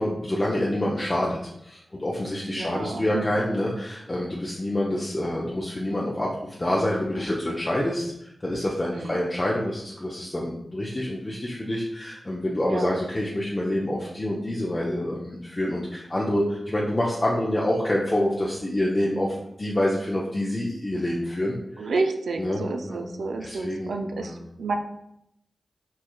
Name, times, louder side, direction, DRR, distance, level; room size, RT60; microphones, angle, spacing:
voice 1, 0.0-21.8 22.4-24.3, left 1 dB, 35° left, -4 dB, 0.5 m, -27 dB
voice 2, 2.5-3.4 8.9-9.2 12.7-12.9 21.8-24.8, right 3 dB, 85° right, 5 dB, 0.3 m, -30 dB
4.4 x 2.2 x 2.3 m, 0.79 s
cardioid pair, 40°, 0 cm